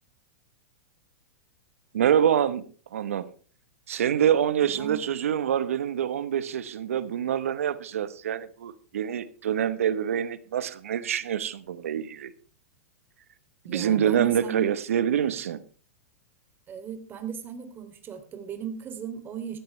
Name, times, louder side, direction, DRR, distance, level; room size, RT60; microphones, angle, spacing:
voice 1, 1.9-3.3 3.9-12.3 13.7-15.6, right 9 dB, 75° right, 1.1 m, -26 dB
voice 2, 4.6-5.0 13.6-14.6 16.7-19.6, right 8 dB, 25° right, 3.0 m, -37 dB
16.5 x 14.0 x 3.3 m
hypercardioid pair, 110°, 8 cm